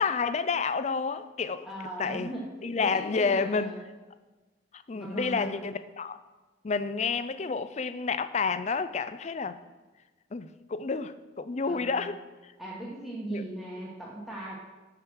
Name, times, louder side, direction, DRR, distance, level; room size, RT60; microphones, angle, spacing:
voice 1, 0.0-1.7 2.0-2.3 2.6-3.7 4.7-6.2 6.6-9.6 10.3-12.1 13.3-13.4, left 5 dB, 35° left, 0.4 m, -29 dB
voice 2, 1.6-2.4 2.8-3.8 4.9-5.5 11.7-12.1 12.6-14.6, right 1 dB, ahead, 1.3 m, -38 dB
10.0 x 5.0 x 6.2 m
head